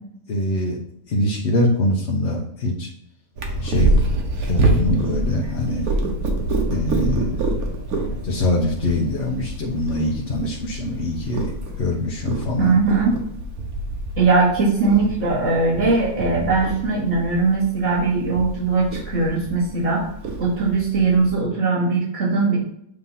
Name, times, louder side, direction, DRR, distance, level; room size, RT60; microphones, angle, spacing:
voice 1, 0.3-0.8 1.1-2.9 3.6-4.0 4.5-5.8 6.7-7.4 8.2-12.8, left 1 dB, 55° left, -2 dB, 1.1 m, -23 dB
Purr, 3.4-21.3, right 2 dB, 85° right, 1.5 m, -26 dB
voice 2, 12.6-13.1 14.2-20.1 20.4-22.6, right 4 dB, 50° right, -9 dB, 2.7 m, -20 dB
8.1 x 3.0 x 5.5 m, 0.73 s
omnidirectional pair, 1.5 m